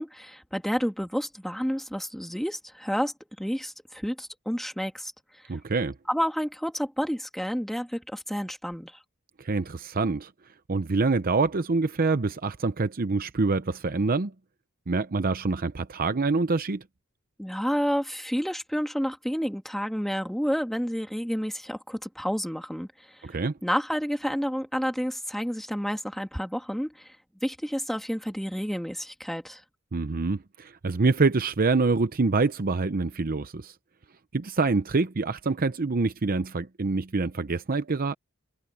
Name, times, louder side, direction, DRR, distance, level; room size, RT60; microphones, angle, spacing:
voice 1, 0.0-5.1 6.1-8.9 17.4-22.9 23.6-27.1 27.4-29.6, equal, ahead, 1.9 m, -30 dB
voice 2, 5.5-5.9 9.4-10.3 10.7-14.3 14.9-16.8 23.2-23.5 29.9-33.7 34.3-38.1, right 3 dB, 45° right, 0.7 m, -26 dB
head